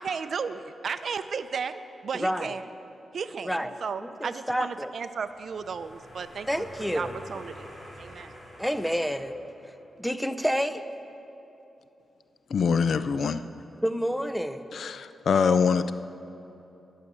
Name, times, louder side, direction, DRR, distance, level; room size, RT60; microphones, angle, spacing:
voice 1, 0.0-2.6 3.1-6.6 6.9-7.7 8.0-8.4, right 6 dB, 55° right, 11 dB, 0.5 m, -34 dB
voice 2, 4.0-4.9 6.5-7.1 8.6-9.3 10.0-10.8 13.8-14.6, equal, ahead, 10 dB, 0.5 m, -28 dB
sound 1, 5.2-9.9, left 1 dB, 20° left, 3.3 m, -48 dB
voice 3, 12.5-13.4 14.7-15.9, left 6 dB, 65° left, 12 dB, 0.3 m, -24 dB
12.5 x 6.7 x 8.1 m, 3.0 s
wide cardioid pair, 130°, 0 cm